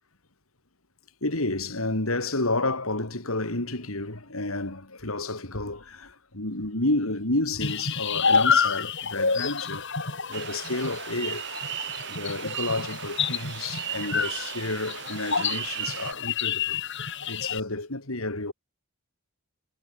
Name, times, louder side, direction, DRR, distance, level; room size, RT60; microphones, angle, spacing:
voice 1, 1.2-9.8 10.3-11.5 12.1-16.8 17.3-18.5, left 2 dB, 75° left, 3.6 m, -30 dB
sound 1, 7.6-17.6, left 6 dB, 55° left, 4.5 m, -28 dB
sound 2, 10.3-16.1, right 10 dB, 55° right, 5.0 m, -36 dB
head